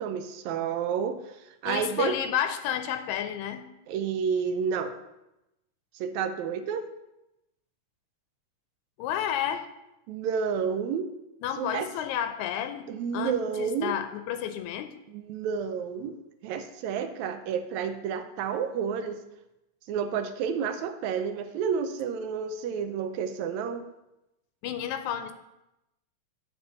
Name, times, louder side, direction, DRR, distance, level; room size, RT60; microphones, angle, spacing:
voice 1, 0.0-1.4 1.6-2.2 3.9-5.0 5.9-6.9 10.1-11.1 11.6-11.9 12.9-14.0 15.1-16.2 16.4-19.2 19.9-23.9, right 7 dB, 80° right, 9 dB, 1.9 m, -30 dB
voice 2, 1.6-3.6 9.0-9.6 11.4-12.9 13.1-14.9 24.6-25.3, left 10 dB, 85° left, 8 dB, 2.0 m, -31 dB
8.0 x 4.1 x 6.8 m, 0.91 s
omnidirectional pair, 3.4 m